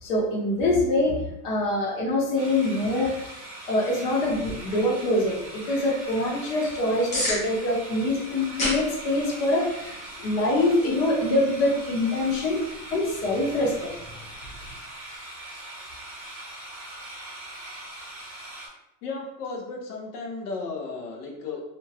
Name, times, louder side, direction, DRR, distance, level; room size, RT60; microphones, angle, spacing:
voice 1, 0.0-3.3 3.7-9.9 10.2-13.9, left 1 dB, 55° left, -2 dB, 1.1 m, -24 dB
sound 1, 2.4-18.7, right 1 dB, 30° right, 0.9 m, -41 dB
sound 2, 4.2-14.8, left 1 dB, 15° left, 0.5 m, -38 dB
voice 2, 19.0-21.6, left 3 dB, 85° left, 1 dB, 0.9 m, -34 dB
2.8 x 2.3 x 2.8 m, 0.85 s
supercardioid pair, 150°, 45 cm